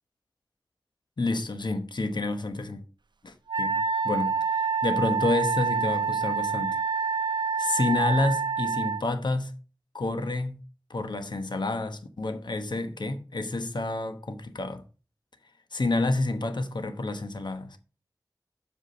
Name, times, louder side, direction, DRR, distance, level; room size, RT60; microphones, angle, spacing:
voice 1, 1.2-2.8 3.2-6.8 7.6-9.5 9.9-10.6 10.9-14.8 15.7-17.8, left 2 dB, 80° left, 1.1 m, -29 dB
Wind instrument woodwind instrument, 3.5-9.0, right 5 dB, 85° right, 0.5 m, -27 dB
7.6 x 5.0 x 6.6 m
wide cardioid pair, 60°, 8 cm